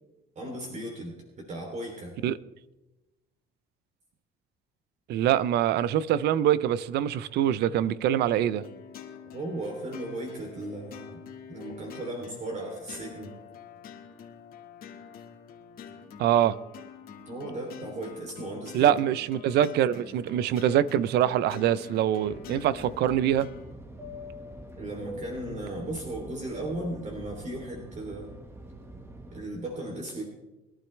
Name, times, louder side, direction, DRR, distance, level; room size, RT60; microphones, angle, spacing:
voice 1, 0.3-2.1 9.3-11.2 11.5-13.4 17.3-18.9 24.8-28.3 29.3-30.2, right 1 dB, 45° right, 3.1 m, -36 dB
voice 2, 5.1-8.6 16.2-16.6 18.7-23.5, right 11 dB, 75° right, 0.6 m, -24 dB
sound 1, 8.3-23.7, left 6 dB, 60° left, 1.9 m, -46 dB
Fixed-wing aircraft airplane, 22.2-29.5, equal, 15° right, 1.7 m, -44 dB
22.5 x 12.0 x 3.3 m
cardioid pair, 110°, 17 cm